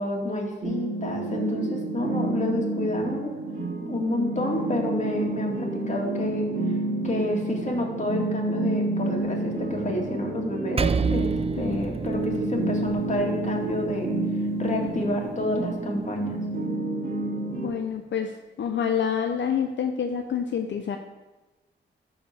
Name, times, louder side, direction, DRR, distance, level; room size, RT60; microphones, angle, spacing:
voice 1, 0.0-3.3 3.9-6.5 7.0-14.1 14.6-16.4, left 1 dB, 35° left, 0 dB, 2.2 m, -29 dB
sound 1, 0.6-17.7, right 2 dB, 50° right, 2.4 m, -29 dB
Percussion, 10.8-15.6, right 5 dB, 30° right, 0.4 m, -31 dB
voice 2, 17.6-21.0, left 7 dB, 70° left, 5 dB, 0.6 m, -27 dB
11.5 x 4.3 x 6.8 m, 1.2 s
cardioid pair, 80°, 20 cm